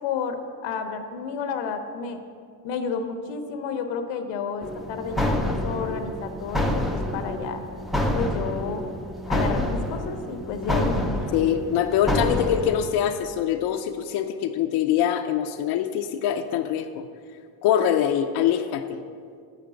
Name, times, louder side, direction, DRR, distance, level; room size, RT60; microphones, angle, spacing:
voice 1, 0.0-2.2 2.6-7.6 8.1-8.8 9.3-11.3, left 5 dB, 90° left, 7 dB, 0.9 m, -31 dB
sound 1, 4.6-12.8, left 1 dB, ahead, 0.5 m, -27 dB
voice 2, 11.3-17.1 17.6-19.0, left 9 dB, 60° left, 5 dB, 0.5 m, -24 dB
7.4 x 5.2 x 6.9 m, 2.2 s
cardioid pair, 130°, 45 cm